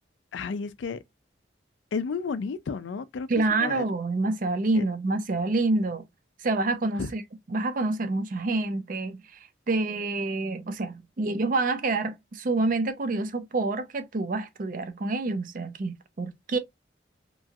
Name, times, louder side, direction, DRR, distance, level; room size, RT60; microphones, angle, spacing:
voice 1, 0.3-1.0 1.9-3.9 4.7-4.8 7.0-7.1, left 5 dB, 85° left, 0.4 m, -32 dB
voice 2, 3.3-6.0 6.4-7.2 7.5-9.2 9.7-16.6, right 3 dB, 45° right, 0.5 m, -27 dB
3.0 x 2.4 x 2.6 m
head